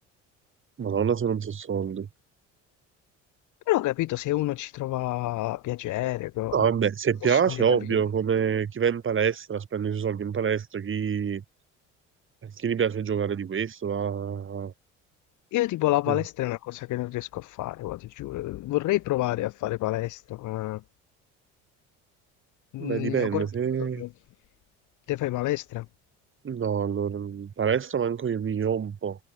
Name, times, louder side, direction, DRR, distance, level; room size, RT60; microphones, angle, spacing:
voice 1, 0.8-2.1 6.5-11.4 12.4-14.7 16.1-16.2 22.8-24.0 26.4-29.2, right 7 dB, 40° right, 5.6 m, -26 dB
voice 2, 3.7-6.6 7.2-7.8 15.5-20.8 22.7-23.5 23.8-24.1 25.1-25.9, left 17 dB, 65° left, 1.9 m, -29 dB
supercardioid pair, 90°, 32 cm